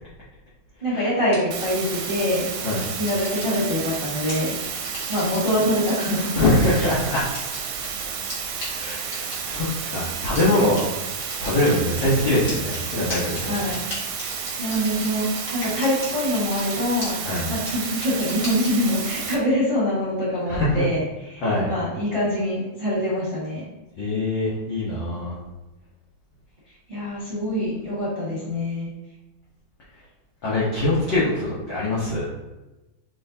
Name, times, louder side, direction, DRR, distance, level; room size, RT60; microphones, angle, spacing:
voice 1, 0.8-2.5 2.9-4.6 5.1-6.3 6.7-6.9 13.4-13.8 14.6-15.3 15.5-17.2 17.5-23.6 26.9-28.9, equal, 30° right, -12 dB, 0.9 m, -24 dB
sound 1, 1.3-1.6 2.1-2.4 2.8-3.9 4.3-5.5 5.9-7.9 8.3-8.4 8.6-8.7 9.1-9.6 10.0-10.1 10.4-10.5 10.8-10.9 11.1-12.0 12.5-16.1 16.3-16.7 17.0-17.1 17.4-17.5 17.7-18.7, left 1 dB, 40° left, 1.2 m, -35 dB
sound 2, 1.5-19.4, right 6 dB, 80° right, 1.7 m, -31 dB
voice 2, 6.4-7.3 8.7-10.8 11.4-13.7 17.2-17.5 20.5-20.8 21.4-21.7 24.0-25.4 30.4-32.3, left 1 dB, 80° left, -8 dB, 1.0 m, -23 dB
5.5 x 3.2 x 2.7 m, 1.0 s
omnidirectional pair, 3.5 m